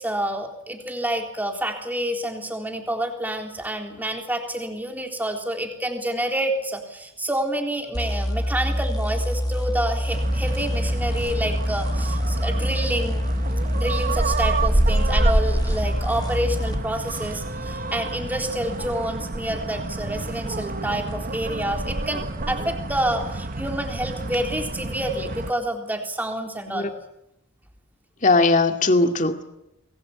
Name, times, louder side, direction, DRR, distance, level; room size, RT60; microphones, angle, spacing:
voice 1, 0.0-13.2 13.7-26.9, right 1 dB, 10° right, 3 dB, 3.7 m, -28 dB
sound 1, 7.9-16.9, equal, 20° left, 1.5 m, -26 dB
sound 2, 10.1-25.5, right 2 dB, 40° right, 1.3 m, -28 dB
voice 2, 28.2-29.4, left 3 dB, 35° left, 6 dB, 2.3 m, -19 dB
29.5 x 22.0 x 8.7 m, 0.87 s
head